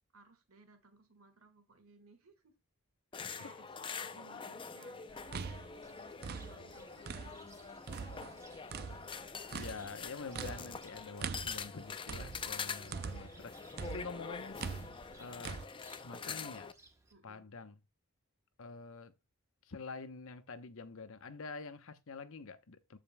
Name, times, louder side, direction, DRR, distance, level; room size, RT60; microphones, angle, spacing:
voice 1, 0.1-2.5 3.4-8.2 17.1-17.5, right 3 dB, 70° right, 1.7 m, -61 dB
voice 2, 3.1-3.5 3.9-4.0 9.5-14.6 15.2-15.6 15.9-16.7 17.2-17.7 18.6-19.1 19.6-23.0, left 4 dB, 65° left, 0.8 m, -47 dB
sound 1, 3.1-16.7, left 5 dB, 25° left, 0.5 m, -45 dB
sound 2, 5.1-7.5 7.9-13.4 13.8-15.6, right 6 dB, 45° right, 0.4 m, -43 dB
Cricket, 5.8-17.1, right 3 dB, 15° right, 0.9 m, -63 dB
14.5 x 5.1 x 2.2 m
head